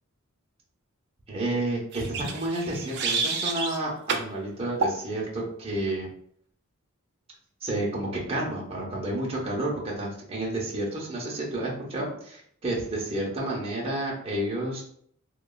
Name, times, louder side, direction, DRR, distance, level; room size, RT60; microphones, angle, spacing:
voice 1, 1.3-6.1 7.6-14.8, right 1 dB, 30° right, -4 dB, 0.7 m, -30 dB
sound 1, 1.9-3.8 4.1-4.3 4.8-5.0, right 4 dB, 55° right, 0.4 m, -29 dB
3.0 x 2.3 x 2.2 m, 0.63 s
head